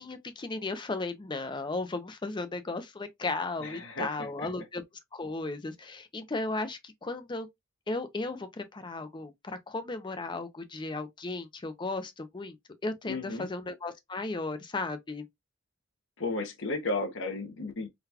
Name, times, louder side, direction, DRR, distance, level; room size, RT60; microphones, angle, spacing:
voice 1, 0.0-4.8 5.1-7.5 7.9-12.6 12.8-15.3, left 3 dB, 25° left, 0.5 m, -35 dB
voice 2, 3.6-4.5 13.1-13.5 16.2-17.9, left 2 dB, 65° left, 0.9 m, -34 dB
3.8 x 2.3 x 2.7 m
head